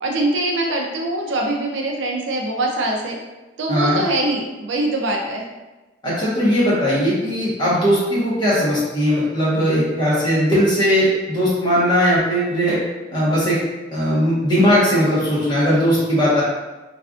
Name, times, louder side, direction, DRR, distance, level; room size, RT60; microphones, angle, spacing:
voice 1, 0.0-3.2 3.6-5.5, right 1 dB, 65° right, 0 dB, 0.4 m, -23 dB
voice 2, 3.7-4.0 6.0-12.8 13.1-13.6 13.9-16.4, equal, 25° left, -9 dB, 1.1 m, -18 dB
3.2 x 2.5 x 2.4 m, 1.1 s
head